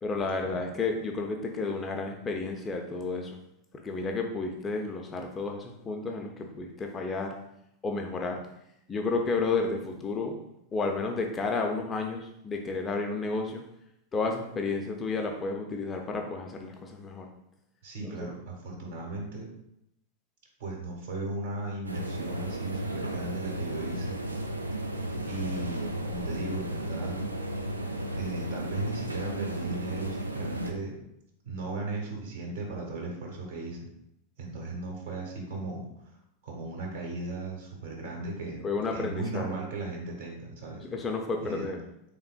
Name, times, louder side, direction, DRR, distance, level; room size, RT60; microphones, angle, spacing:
voice 1, 0.0-3.4 3.7-7.4 7.8-8.4 8.9-10.4 10.7-13.6 14.1-17.3 38.6-39.6 40.8-41.8, left 3 dB, 20° left, 3 dB, 0.4 m, -31 dB
voice 2, 17.8-19.5 20.6-24.2 25.2-27.2 28.2-31.0 31.4-33.9 34.4-36.2 36.4-38.6 38.9-40.9 41.4-41.7, right 2 dB, 55° right, -1 dB, 1.1 m, -37 dB
sound 1, 21.8-30.7, right 1 dB, 80° right, 0.3 m, -34 dB
3.5 x 3.3 x 2.3 m, 0.79 s
figure-of-eight pair, 90°, 0 cm